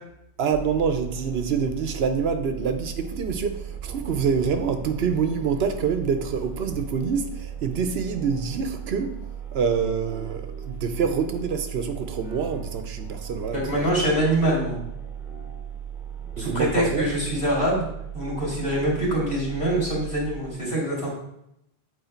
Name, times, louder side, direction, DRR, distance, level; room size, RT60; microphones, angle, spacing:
voice 1, 0.4-9.2 9.5-13.9 16.4-17.1, right 6 dB, 75° right, 7 dB, 1.0 m, -26 dB
sound 1, 0.5-20.4, right 8 dB, 5° right, 1.3 m, -37 dB
voice 2, 13.5-14.8 16.4-17.9 18.1-21.1, right 1 dB, 60° left, -5 dB, 2.9 m, -24 dB
8.1 x 4.5 x 4.4 m, 0.78 s
omnidirectional pair, 1.1 m